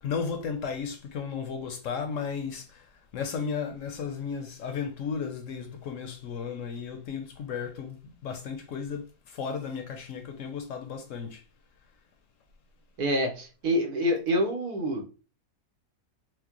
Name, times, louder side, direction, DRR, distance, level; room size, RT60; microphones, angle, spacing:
voice 1, 0.0-11.4, left 6 dB, 65° left, 0.9 m, -34 dB
voice 2, 13.0-15.0, equal, 85° right, 1.5 m, -27 dB
4.5 x 2.1 x 2.9 m
omnidirectional pair, 1.6 m